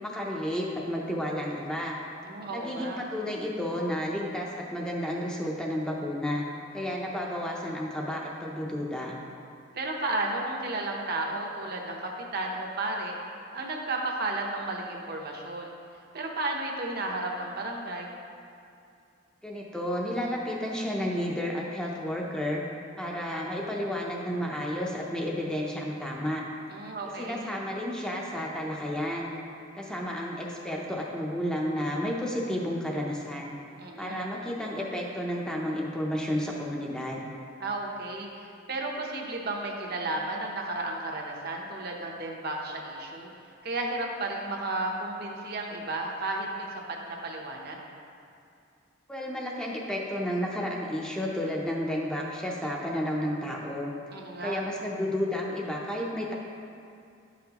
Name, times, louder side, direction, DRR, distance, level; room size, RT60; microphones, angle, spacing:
voice 1, 0.0-2.0 2.5-6.4 6.7-9.2 19.4-22.6 23.0-26.4 27.2-29.4 29.7-33.6 34.0-37.3 49.1-53.9 54.4-56.3, equal, 5° left, -3 dB, 0.6 m, -31 dB
voice 2, 2.2-3.0 9.7-13.2 13.5-15.7 16.1-18.1 26.7-27.5 33.8-34.2 37.6-43.3 43.6-47.8 54.1-54.6, right 2 dB, 50° right, 0 dB, 0.8 m, -33 dB
10.5 x 5.8 x 2.9 m, 2.5 s
head